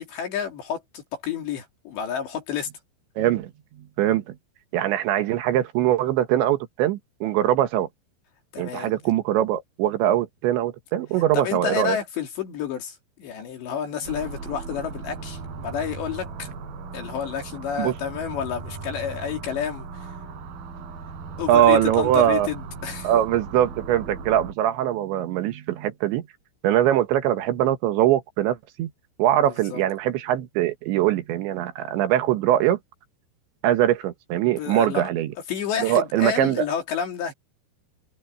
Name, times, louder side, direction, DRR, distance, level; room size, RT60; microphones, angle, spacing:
voice 1, 0.0-2.7 8.5-9.0 11.3-16.5 16.9-20.2 21.4-23.1 29.7-29.8 34.5-35.1 35.5-37.3, left 8 dB, 65° left, 4.7 m, -30 dB
voice 2, 3.2-3.5 3.8-4.4 4.7-7.9 8.6-12.0 17.8-17.9 21.5-22.5 23.0-26.3 26.6-28.9 29.2-32.8 33.6-35.3 35.8-36.7, right 12 dB, 75° right, 3.5 m, -22 dB
sound 1, 14.1-24.5, right 4 dB, 50° right, 8.0 m, -37 dB
omnidirectional pair, 5.6 m